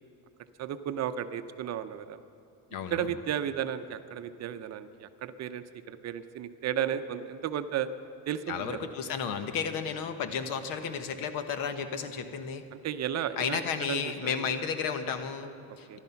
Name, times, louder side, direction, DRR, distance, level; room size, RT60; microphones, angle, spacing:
voice 1, 0.6-2.2 2.9-7.9 8.3-8.8 12.7-13.6 13.9-14.5 15.9-16.0, right 9 dB, 45° right, 10 dB, 0.7 m, -34 dB
voice 2, 2.7-3.1 8.5-12.6 13.4-16.0, left 6 dB, 65° left, 9 dB, 1.2 m, -33 dB
15.0 x 12.0 x 5.8 m, 2.7 s
cardioid pair, 125°, 36 cm